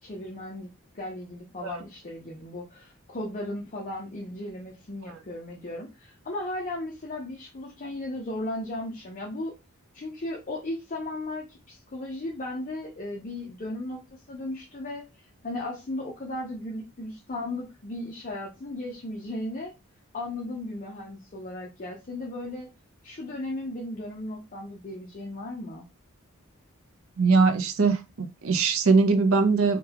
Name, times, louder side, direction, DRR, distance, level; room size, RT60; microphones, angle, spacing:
voice 1, 0.0-0.7 0.9-9.5 9.9-19.7 20.1-22.7 23.0-25.9, left 1 dB, 35° left, 0.5 m, -36 dB
voice 2, 27.2-29.8, right 4 dB, 65° right, 0.5 m, -21 dB
3.7 x 2.2 x 2.8 m
head